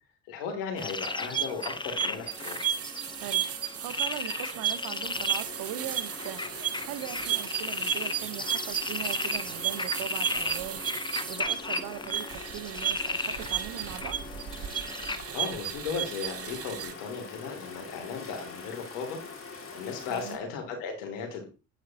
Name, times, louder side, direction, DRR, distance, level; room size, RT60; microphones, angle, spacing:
voice 1, 0.3-2.6 15.3-19.2 19.7-21.5, left 5 dB, 70° left, 3.0 m, -36 dB
sound 1, 0.8-15.2, left 3 dB, 10° left, 0.8 m, -36 dB
sound 2, 1.0-16.9, right 10 dB, 40° right, 0.8 m, -33 dB
voice 2, 3.2-6.4 6.8-10.8 11.3-14.2 20.1-20.4, right 12 dB, 60° right, 1.1 m, -40 dB
sound 3, 5.4-20.4, left 4 dB, 35° left, 3.2 m, -45 dB
9.3 x 9.2 x 2.9 m
hypercardioid pair, 55°, 38 cm